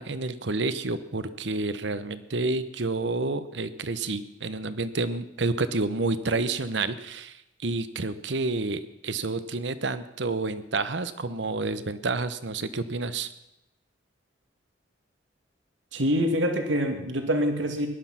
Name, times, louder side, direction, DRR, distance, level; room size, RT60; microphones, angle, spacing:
voice 1, 0.0-13.3, right 3 dB, 70° right, 13 dB, 1.0 m, -29 dB
voice 2, 15.9-17.9, equal, 85° right, 5 dB, 2.1 m, -25 dB
18.5 x 11.5 x 5.9 m, 0.88 s
head